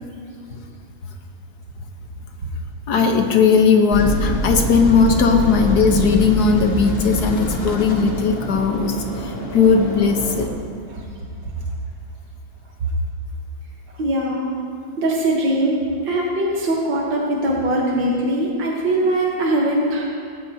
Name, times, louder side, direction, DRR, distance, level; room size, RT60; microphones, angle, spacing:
voice 1, 2.9-10.5, left 5 dB, 60° left, 4 dB, 1.6 m, -17 dB
sound 1, 3.9-10.5, left 1 dB, 35° left, 1.7 m, -25 dB
voice 2, 14.0-14.5 15.0-20.1, right 1 dB, 85° right, -2 dB, 2.1 m, -21 dB
17.5 x 15.5 x 2.8 m, 2.3 s
omnidirectional pair, 2.0 m